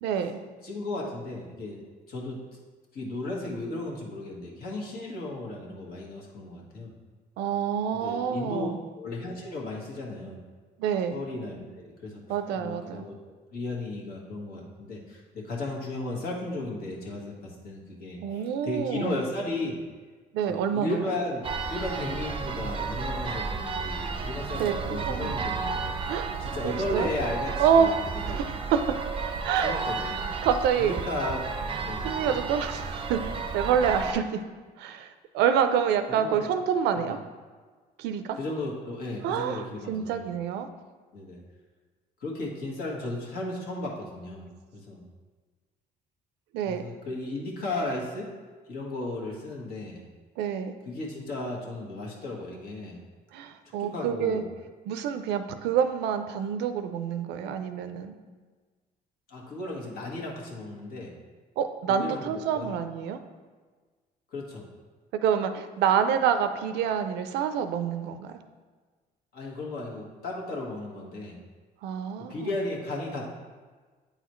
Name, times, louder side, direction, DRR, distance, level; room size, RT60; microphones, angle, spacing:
voice 1, 0.0-0.4 7.4-8.8 10.8-11.2 12.3-13.1 18.2-19.2 20.3-21.1 24.5-25.3 26.1-26.3 26.6-27.1 27.6-28.8 29.4-30.2 30.4-30.9 32.0-34.4 34.8-37.2 38.0-38.4 39.2-40.7 46.5-46.8 50.4-50.8 53.3-54.4 54.8-58.1 61.6-63.2 65.1-68.4 71.8-72.5, right 8 dB, 85° right, 9 dB, 0.5 m, -27 dB
voice 2, 0.6-1.8 2.1-2.6 2.9-6.9 7.9-8.7 9.0-10.4 11.1-12.2 12.5-19.8 20.5-26.0 26.4-28.4 29.6-30.4 30.8-31.5 31.8-32.1 36.1-36.5 36.9-37.0 38.3-40.3 41.1-41.4 42.2-45.1 46.6-48.3 48.7-50.0 50.8-53.0 53.8-54.5 59.3-61.1 61.9-62.7 64.3-64.7 69.3-71.4 72.3-73.3, left 2 dB, 65° left, -2 dB, 1.6 m, -35 dB
sound 1, 21.4-34.1, right 4 dB, 30° right, 0.5 m, -32 dB
8.9 x 4.0 x 3.1 m, 1.4 s
cardioid pair, 110°, 17 cm